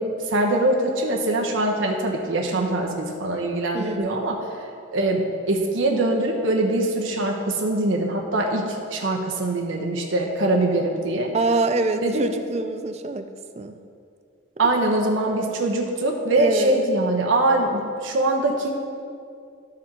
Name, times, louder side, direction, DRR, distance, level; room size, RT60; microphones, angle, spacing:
voice 1, 0.0-4.4 4.9-11.3 12.0-12.3 14.6-18.7, right 2 dB, 85° right, 0 dB, 0.9 m, -23 dB
voice 2, 2.5-2.9 3.7-4.1 11.3-13.3 13.6-13.8 16.4-16.8, right 3 dB, 35° right, 8 dB, 0.4 m, -25 dB
13.0 x 4.5 x 3.8 m, 2.4 s
head